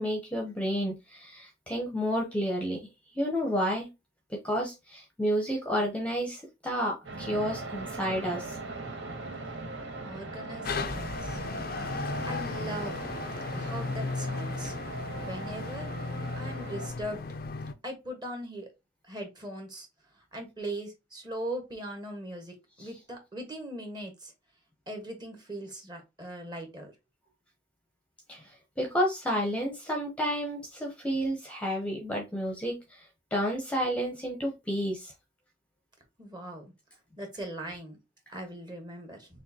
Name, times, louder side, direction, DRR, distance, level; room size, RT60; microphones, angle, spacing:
voice 1, 0.0-2.9 3.1-3.9 4.3-8.6 22.8-23.0 28.3-28.4 28.8-33.0 33.3-35.1, equal, 5° left, 0 dB, 0.8 m, -30 dB
sound 1, 7.0-16.9, right 3 dB, 70° right, 1.2 m, -40 dB
voice 2, 10.0-11.4 12.2-13.0 13.5-14.7 15.1-15.9 16.4-17.2 17.8-18.7 19.1-19.9 20.3-24.3 24.9-26.9 36.2-36.6 37.2-38.0 38.3-39.3, right 1 dB, 20° right, 3 dB, 1.2 m, -39 dB
sound 2, 10.6-17.7, left 3 dB, 45° left, 0.5 m, -35 dB
6.2 x 2.5 x 2.8 m, 0.24 s
head